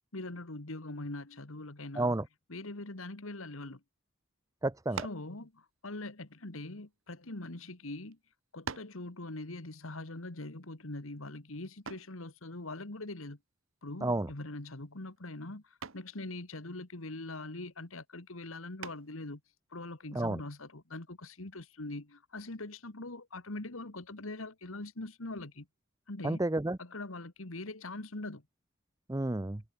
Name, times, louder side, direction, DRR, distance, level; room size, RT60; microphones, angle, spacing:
voice 1, 0.1-2.2 2.5-3.8 5.0-8.2 8.5-13.4 13.8-15.6 15.9-19.4 19.7-25.7 26.1-26.4 26.8-28.4, left 2 dB, 75° left, 2.0 m, -42 dB
voice 2, 4.6-5.1 14.0-14.3 20.1-20.4 26.2-26.8 29.1-29.6, right 2 dB, 15° right, 0.6 m, -31 dB
sound 1, 4.9-5.3 6.3-7.5 8.1-8.2 8.7-9.1 11.9-12.2 14.1-14.5 14.8-15.2 15.8-16.1 18.8-19.3, right 5 dB, 70° right, 1.2 m, -43 dB
head